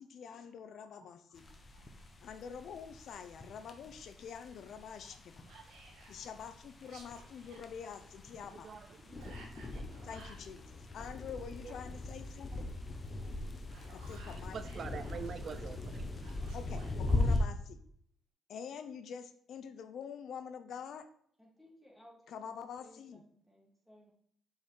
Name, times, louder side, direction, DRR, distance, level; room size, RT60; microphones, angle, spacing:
voice 1, 0.0-1.5 2.2-5.4 6.1-8.7 10.0-12.7 13.9-14.6 16.5-17.8 18.5-21.1 22.3-23.2, left 7 dB, 70° left, 10 dB, 0.6 m, -46 dB
sound 1, 1.4-17.4, left 2 dB, 35° left, 1.2 m, -40 dB
Whispering, 5.5-6.2 6.8-7.6 9.2-10.5 13.5-15.4 16.2-17.4, right 3 dB, 80° right, 2.2 m, -57 dB
voice 2, 8.5-9.4 11.6-11.8 13.2-13.3 14.4-16.0, right 6 dB, 55° right, 11 dB, 0.5 m, -46 dB
voice 3, 21.4-24.1, left 1 dB, ahead, -3 dB, 3.1 m, -61 dB
6.4 x 5.6 x 4.6 m, 0.67 s
cardioid pair, 90°, 0 cm